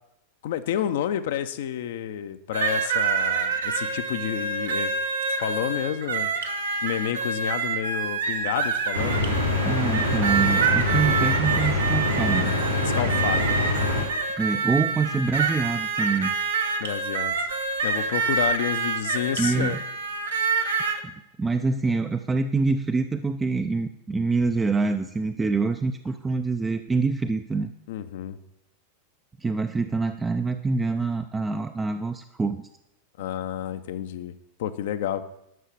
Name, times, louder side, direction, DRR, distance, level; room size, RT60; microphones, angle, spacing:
voice 1, 0.4-4.9 5.4-6.3 6.8-9.3 12.8-13.5 16.8-17.5 17.8-19.8 20.4-20.5 27.9-28.4 33.2-34.3 34.6-35.2, left 10 dB, 55° left, 10 dB, 0.7 m, -30 dB
sound 1, 2.5-21.0, right 5 dB, 65° right, 1.1 m, -27 dB
sound 2, 8.9-14.0, left 2 dB, 85° right, 3.5 m, -25 dB
voice 2, 9.6-12.5 14.4-16.3 19.4-19.8 21.0-21.1 21.4-27.7 29.4-32.7, right 4 dB, 15° right, 8 dB, 0.5 m, -25 dB
11.0 x 6.4 x 6.8 m, 0.83 s
figure-of-eight pair, 90°, 0 cm